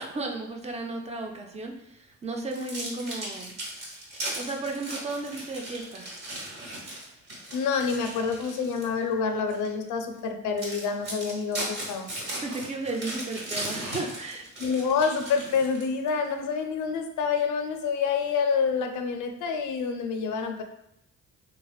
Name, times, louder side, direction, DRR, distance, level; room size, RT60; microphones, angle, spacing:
voice 1, 0.0-3.5 4.1-6.1 12.3-14.5, right 2 dB, 20° right, 2 dB, 0.4 m, -34 dB
sound 1, 2.5-9.0 9.5-9.7 10.2-10.3 10.6-16.1, right 1 dB, 55° right, 1.2 m, -37 dB
voice 2, 7.5-12.1 14.6-20.6, left 5 dB, 80° left, 5 dB, 0.5 m, -27 dB
3.1 x 2.4 x 2.3 m, 0.82 s
cardioid pair, 90°, 30 cm